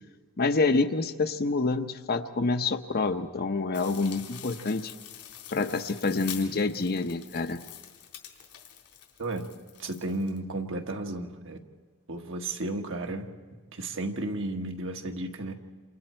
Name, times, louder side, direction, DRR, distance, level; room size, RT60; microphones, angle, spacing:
voice 1, 0.4-4.9 5.5-7.6, left 3 dB, 45° left, 7 dB, 0.9 m, -27 dB
sound 1, 3.7-10.4, left 10 dB, 85° left, 4.0 m, -45 dB
voice 2, 9.8-11.6 12.1-13.3 13.7-15.5, right 2 dB, 60° right, 3 dB, 1.7 m, -33 dB
28.0 x 27.5 x 4.5 m, 1.4 s
head